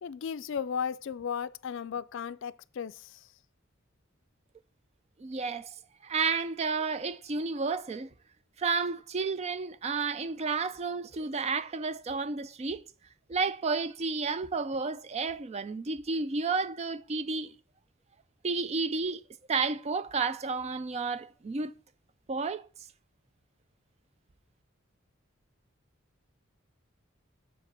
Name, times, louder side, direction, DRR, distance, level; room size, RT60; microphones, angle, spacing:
voice 1, 0.0-3.2, left 7 dB, 65° left, 0.4 m, -35 dB
voice 2, 5.2-5.7 6.0-8.1 8.6-12.8 13.3-17.5 18.4-19.2 19.5-21.7 22.3-22.7, right 4 dB, 30° right, 0.4 m, -31 dB
7.0 x 4.9 x 6.7 m
head